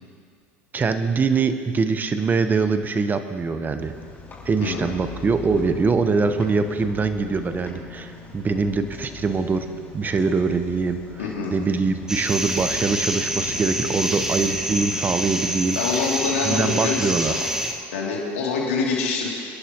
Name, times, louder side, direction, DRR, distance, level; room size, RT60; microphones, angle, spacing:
voice 1, 0.7-3.9 4.4-9.7 9.9-11.0 11.5-15.8 16.4-17.3, right 4 dB, 25° right, 9 dB, 1.1 m, -23 dB
sound 1, 3.8-15.2, left 4 dB, 30° left, 4.5 m, -40 dB
voice 2, 4.6-5.0 11.2-11.5 15.7-17.4 17.9-19.3, left 4 dB, 90° left, -3 dB, 2.8 m, -25 dB
sound 2, 12.1-17.7, right 1 dB, 10° right, 1.4 m, -27 dB
26.0 x 11.0 x 3.1 m, 2.2 s
supercardioid pair, 95°, 7 cm